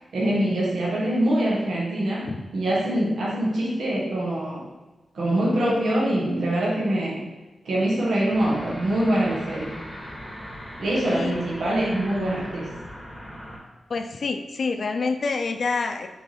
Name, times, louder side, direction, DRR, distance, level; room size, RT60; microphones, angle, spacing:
voice 1, 0.1-4.7 5.1-7.2 7.6-9.8 10.8-12.7, right 1 dB, 80° right, -5 dB, 1.6 m, -24 dB
sound 1, 8.3-13.6, equal, ahead, 1.3 m, -39 dB
voice 2, 11.0-11.4 13.9-16.1, left 4 dB, 50° left, 6 dB, 0.5 m, -27 dB
5.5 x 4.1 x 4.3 m, 1.2 s
wide cardioid pair, 160°, 0 cm